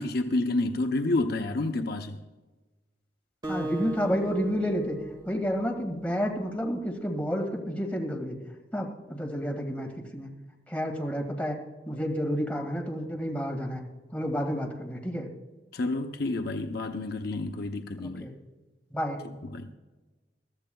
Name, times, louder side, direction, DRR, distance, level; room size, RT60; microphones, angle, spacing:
voice 1, 0.0-2.2 15.7-18.3 19.5-19.7, left 2 dB, 60° left, 0.7 m, -29 dB
Acoustic guitar, 3.4-6.2, right 2 dB, 25° right, 1.7 m, -38 dB
voice 2, 3.5-5.0 5.3-8.4 8.7-10.3 10.7-11.6 11.9-13.8 14.1-15.3 18.0-18.3 18.9-19.2, equal, 10° left, 1.9 m, -30 dB
21.5 x 14.0 x 2.3 m
head